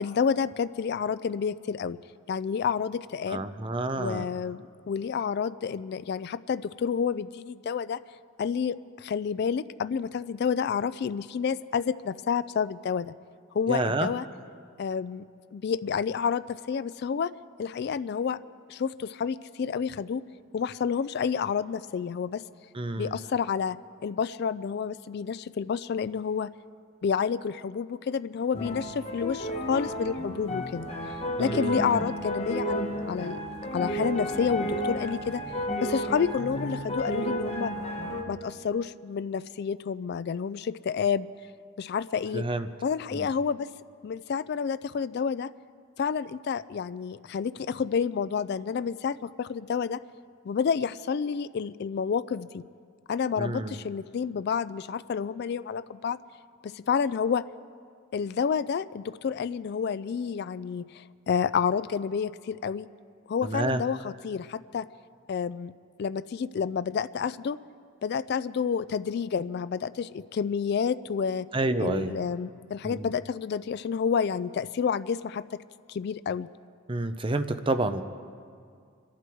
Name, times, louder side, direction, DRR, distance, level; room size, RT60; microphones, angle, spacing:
voice 1, 0.0-2.0 2.3-3.4 4.0-8.0 8.4-13.1 13.5-14.2 14.8-15.2 15.5-17.3 17.6-18.4 18.7-20.2 20.5-22.4 23.0-26.5 27.0-30.9 31.4-35.4 35.8-37.7 38.3-41.3 41.8-42.5 42.8-43.7 44.0-45.5 46.0-50.0 50.4-52.6 53.1-56.2 56.6-57.4 58.1-62.9 63.3-64.9 65.3-65.7 66.0-67.6 68.0-71.5 71.8-75.4 75.9-76.5, left 6 dB, 50° left, 15 dB, 0.3 m, -29 dB
voice 2, 3.3-4.3 13.7-14.1 22.7-23.2 31.4-32.0 42.3-42.7 43.1-43.3 53.4-53.8 63.4-63.8 71.5-72.1 72.8-73.1 76.9-78.0, right 2 dB, 25° right, 9 dB, 0.6 m, -29 dB
sound 1, 28.5-38.2, equal, 30° left, 1.3 m, -32 dB
26.0 x 11.0 x 4.6 m, 2.2 s
head